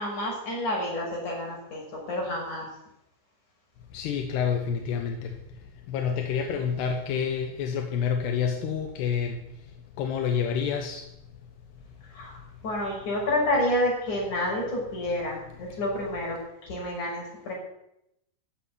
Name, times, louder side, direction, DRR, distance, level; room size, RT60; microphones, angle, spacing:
voice 1, 0.0-2.7 12.1-12.4 12.6-17.5, left 1 dB, 50° left, -3 dB, 7.4 m, -29 dB
voice 2, 3.9-5.3 5.9-9.4 10.0-11.0, left 7 dB, 85° left, 4 dB, 3.3 m, -28 dB
15.0 x 7.6 x 9.6 m, 0.81 s
omnidirectional pair, 4.6 m